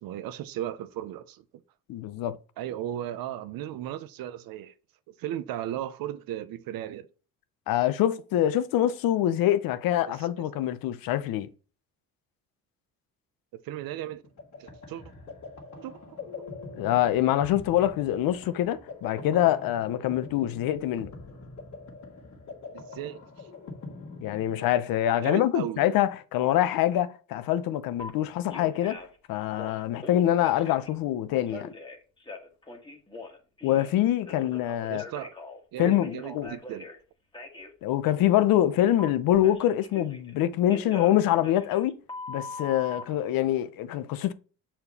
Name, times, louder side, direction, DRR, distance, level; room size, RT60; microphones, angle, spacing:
voice 1, 0.0-1.4 2.6-4.7 5.1-7.1 10.1-10.4 13.6-14.2 14.6-15.0 15.8-16.2 22.7-23.5 25.2-25.9 34.9-35.4 35.7-36.9, right 12 dB, 85° right, 0.8 m, -36 dB
voice 2, 1.9-2.4 7.7-11.5 16.8-21.1 24.2-29.0 29.3-31.7 33.6-35.0 35.8-36.5 37.8-41.9 42.3-44.3, left 12 dB, 85° left, 0.8 m, -25 dB
sound 1, 14.1-24.9, left 3 dB, 55° left, 1.8 m, -44 dB
Telephone, 28.0-28.1 28.5-29.2 29.5-30.9 31.5-33.9 34.3-37.0 37.3-37.7 39.0-40.3 40.7-43.0, left 3 dB, 15° left, 1.5 m, -41 dB
7.0 x 4.4 x 4.2 m
cardioid pair, 130°, 34 cm